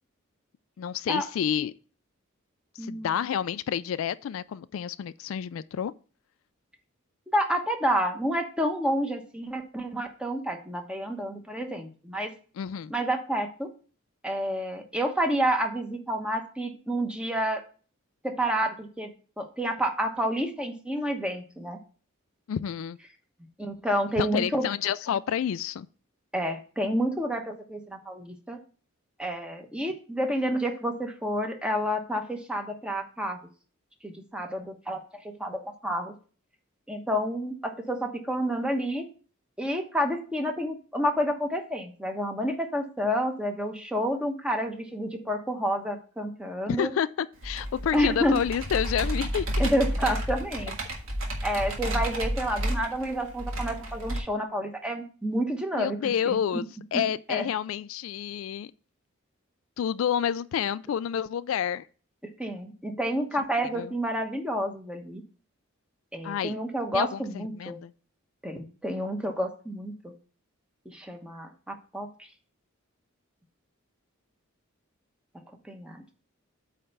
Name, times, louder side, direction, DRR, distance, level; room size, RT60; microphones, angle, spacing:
voice 1, 0.8-1.7 2.8-5.9 12.6-12.9 22.5-23.0 24.2-25.9 46.7-49.7 55.7-56.6 56.9-58.7 59.8-61.9 63.8-63.9 66.2-66.6 66.9-67.9, left 8 dB, 75° left, 0.3 m, -29 dB
voice 2, 2.8-3.2 7.3-12.3 12.9-13.7 14.2-17.6 18.2-21.8 23.6-24.7 26.3-28.6 29.2-33.4 34.0-36.1 36.9-39.0 39.6-46.9 47.9-48.3 49.6-50.8 51.4-56.6 56.9-57.0 57.3-57.4 62.4-65.2 66.1-67.8 68.4-70.1 70.8-72.3 75.6-76.2, equal, 5° right, 1.0 m, -29 dB
Computer keyboard, 47.4-54.2, equal, 80° right, 1.7 m, -31 dB
8.5 x 3.3 x 6.6 m
head